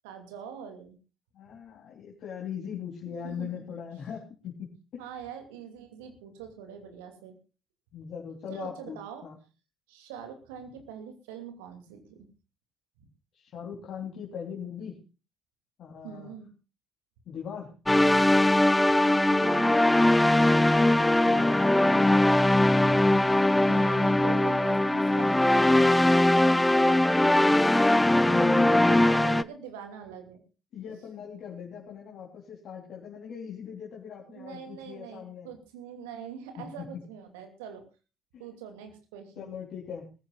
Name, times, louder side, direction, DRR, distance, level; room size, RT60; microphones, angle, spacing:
voice 1, 0.0-1.0 3.1-3.8 5.0-7.4 8.5-9.3 9.9-12.3 16.0-16.5 18.9-20.0 23.6-27.2 28.5-30.4 34.3-37.8 38.4-39.6, right 7 dB, 75° right, 6 dB, 2.7 m, -43 dB
voice 2, 1.3-5.0 7.9-9.4 13.3-15.0 15.8-16.3 17.3-17.7 20.3-24.3 24.9-25.0 26.7-27.5 28.2-29.4 30.7-35.5 36.6-36.9 38.3-38.4 39.4-40.1, left 7 dB, 55° left, -3 dB, 3.8 m, -40 dB
sound 1, 17.9-29.4, left 1 dB, 10° left, 0.7 m, -21 dB
23.0 x 15.0 x 2.5 m, 0.32 s
figure-of-eight pair, 55°, 0 cm